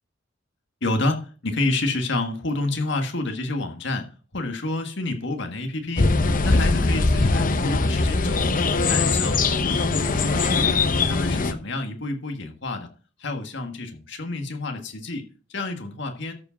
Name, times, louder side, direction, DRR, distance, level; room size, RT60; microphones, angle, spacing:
voice 1, 0.8-4.0 4.3-6.1 6.4-8.6 8.9-12.9 13.2-16.3, left 2 dB, 65° left, 1.7 m, -29 dB
sound 1, 6.0-11.5, left 3 dB, 45° left, 0.8 m, -21 dB
13.0 x 5.0 x 5.1 m
head